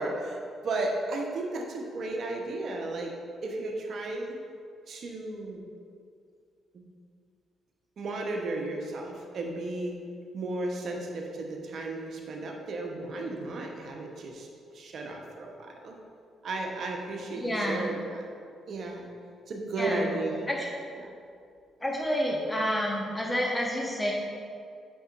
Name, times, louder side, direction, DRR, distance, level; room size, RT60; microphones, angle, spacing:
voice 1, 0.0-3.1 3.4-4.4 4.9-5.6 6.7-6.8 8.0-10.0 10.3-14.5 14.7-15.9 16.4-18.3 18.7-19.1 19.5-20.5 21.0-21.1, right 2 dB, 60° right, 1 dB, 0.9 m, -34 dB
voice 2, 17.4-17.9 19.8-20.1 20.5-20.7 21.8-24.1, equal, 15° left, -2 dB, 1.1 m, -29 dB
7.9 x 5.4 x 2.5 m, 2.3 s
supercardioid pair, 55°, 0 cm